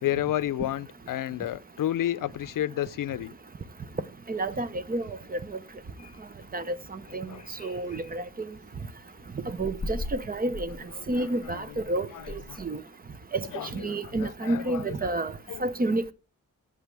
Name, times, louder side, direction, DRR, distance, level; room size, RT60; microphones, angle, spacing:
voice 1, 0.0-3.3 7.3-7.4 11.0-11.1 12.1-12.6 13.5-14.8 15.5-15.6, left 12 dB, 90° left, 0.5 m, -31 dB
sound 1, 4.3-12.7, left 2 dB, 25° left, 3.5 m, -43 dB
voice 2, 4.3-5.4 6.5-7.3 7.6-8.5 9.5-10.7 11.1-12.8 13.3-13.5 13.7-15.3 15.6-16.1, right 2 dB, 30° right, 0.7 m, -30 dB
14.5 x 8.8 x 3.4 m
wide cardioid pair, 170°, 31 cm